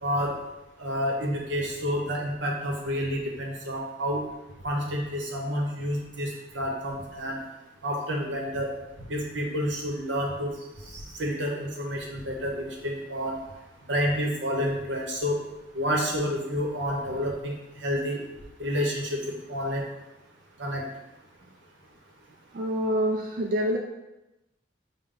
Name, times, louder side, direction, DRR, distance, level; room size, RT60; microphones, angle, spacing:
voice 1, 0.0-0.3 0.8-4.2 4.6-7.4 7.8-8.7 9.1-10.5 10.8-13.4 13.9-15.4 15.7-18.2 18.6-19.2 19.5-19.8 20.6-20.8, equal, 85° right, -1 dB, 0.9 m, -29 dB
voice 2, 22.5-23.8, equal, 50° right, 1 dB, 0.3 m, -26 dB
5.3 x 2.2 x 3.7 m, 0.99 s
head